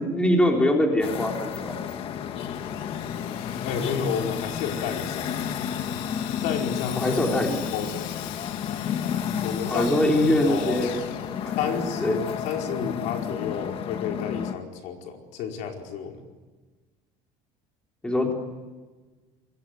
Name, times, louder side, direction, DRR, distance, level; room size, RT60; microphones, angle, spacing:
voice 1, 0.0-1.7 7.0-7.6 9.7-11.0 11.3-11.6 12.0-12.2 18.0-18.3, left 1 dB, 5° left, 1 dB, 3.9 m, -23 dB
sound 1, 1.0-14.5, left 8 dB, 40° left, 1.7 m, -32 dB
Sawing, 2.5-11.9, left 13 dB, 80° left, 2.2 m, -41 dB
voice 2, 3.6-5.4 6.4-7.2 7.7-8.1 9.4-9.9 10.3-11.0 11.6-16.2, left 6 dB, 60° left, 2 dB, 4.8 m, -31 dB
27.5 x 22.5 x 9.5 m, 1.3 s
cardioid pair, 160°, 14 cm